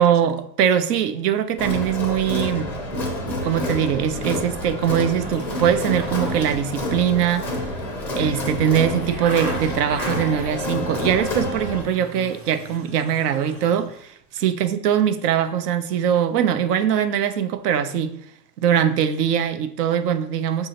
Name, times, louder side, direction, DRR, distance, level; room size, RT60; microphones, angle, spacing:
voice 1, 0.0-2.7 3.4-7.5 8.2-18.1 18.6-20.7, right 9 dB, 70° right, 0.6 m, -22 dB
Crowd, 1.6-11.8, left 1 dB, 5° left, 0.4 m, -28 dB
sound 1, 5.1-10.7 11.2-14.1 14.4-14.5, right 2 dB, 15° right, 0.8 m, -38 dB
6.6 x 2.7 x 2.8 m
supercardioid pair, 135°, 50 cm